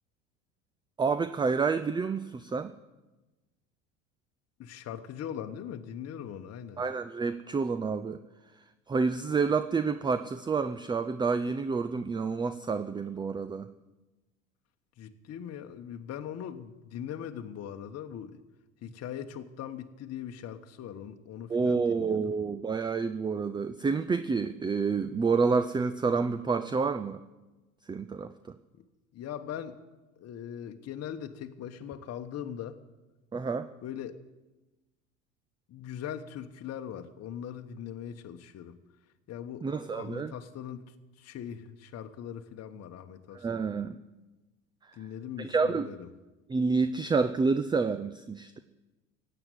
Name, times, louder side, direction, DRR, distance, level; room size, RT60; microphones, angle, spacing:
voice 1, 1.0-2.7 6.8-8.2 8.9-13.7 21.5-27.2 27.9-28.3 33.3-33.7 39.6-40.3 43.3-44.0 45.4-45.9 46.5-48.6, right 4 dB, 10° right, 12 dB, 0.5 m, -28 dB
voice 2, 4.6-6.8 15.0-18.4 18.8-22.2 29.1-29.8 30.2-32.8 33.8-34.2 35.7-38.8 39.3-40.8 41.2-43.7 45.0-46.1, left 9 dB, 40° left, 6 dB, 1.2 m, -40 dB
16.0 x 8.1 x 9.2 m, 1.1 s
hypercardioid pair, 80°, 40 cm